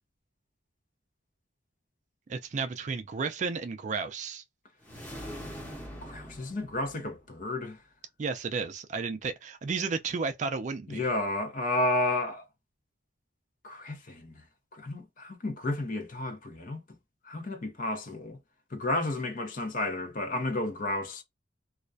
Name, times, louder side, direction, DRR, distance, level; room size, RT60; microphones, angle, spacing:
voice 1, 2.3-4.4 8.2-11.0, right 4 dB, 40° right, 0.3 m, -33 dB
sound 1, 4.8-7.4, equal, 10° left, 0.8 m, -43 dB
voice 2, 6.0-7.8 10.9-12.5 13.6-14.3 14.7-16.8 17.2-18.4 18.7-21.2, left 2 dB, 45° left, 0.6 m, -32 dB
2.3 x 2.1 x 2.5 m
head